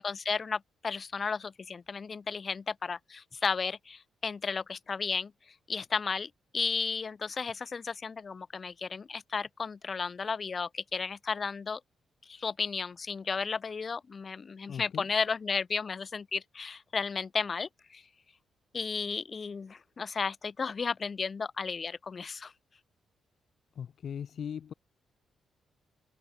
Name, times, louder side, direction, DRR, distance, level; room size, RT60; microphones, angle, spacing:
voice 1, 0.0-5.3 5.7-11.8 12.2-18.0 18.7-22.5, left 5 dB, 45° left, 2.0 m, -34 dB
voice 2, 14.7-15.1 23.7-24.7, left 8 dB, 60° left, 1.0 m, -39 dB
open air
hypercardioid pair, 40°, 0 cm